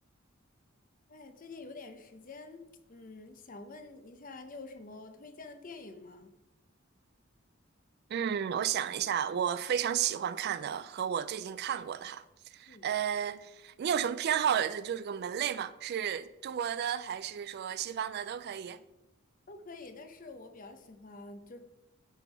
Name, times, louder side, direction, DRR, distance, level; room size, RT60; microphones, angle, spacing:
voice 1, 1.1-2.6 2.9-6.3 12.7-12.9 19.5-21.6, left 3 dB, 40° left, 0.7 m, -47 dB
voice 2, 8.1-12.2 12.5-18.8, right 9 dB, 50° right, 0.3 m, -32 dB
9.9 x 3.5 x 4.6 m
head